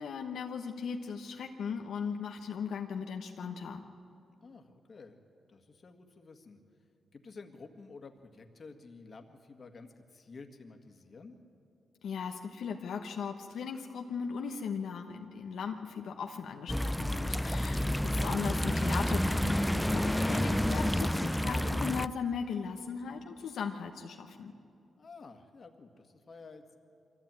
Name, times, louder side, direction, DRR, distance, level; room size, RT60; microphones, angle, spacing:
voice 1, 0.0-3.8 12.0-24.5, left 6 dB, 80° left, 3 dB, 1.1 m, -38 dB
voice 2, 4.4-5.2 5.5-6.6 7.1-11.3 17.7-18.1 25.0-26.7, left 4 dB, 45° left, 5 dB, 1.9 m, -51 dB
sound 1, 16.7-22.1, equal, 5° left, 0.4 m, -29 dB
23.5 x 15.0 x 9.1 m, 2.6 s
cardioid pair, 85°, 0 cm